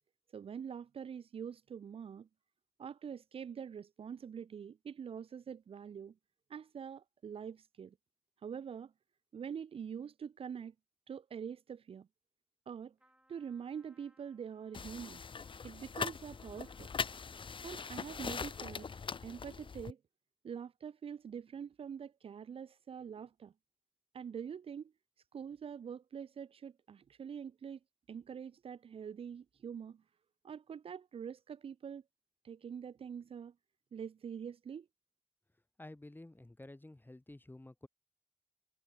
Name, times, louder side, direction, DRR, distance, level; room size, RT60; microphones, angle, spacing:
voice 1, 0.3-2.3 2.8-6.1 6.5-8.0 8.4-8.9 9.3-10.7 11.1-12.1 12.7-12.9 13.3-15.2 15.6-16.9 17.6-18.9 19.2-20.0 20.4-23.5 24.1-24.9 25.3-27.8 28.1-30.0 30.4-32.0 32.4-33.5 33.9-34.9, right 7 dB, 90° right, 0.4 m, -45 dB
Trumpet, 13.0-19.7, right 1 dB, 10° right, 6.5 m, -72 dB
sound 1, 14.7-19.9, left 5 dB, 65° left, 0.6 m, -41 dB
voice 2, 35.8-37.9, left 1 dB, 20° left, 2.6 m, -52 dB
wide cardioid pair, 65°, 10 cm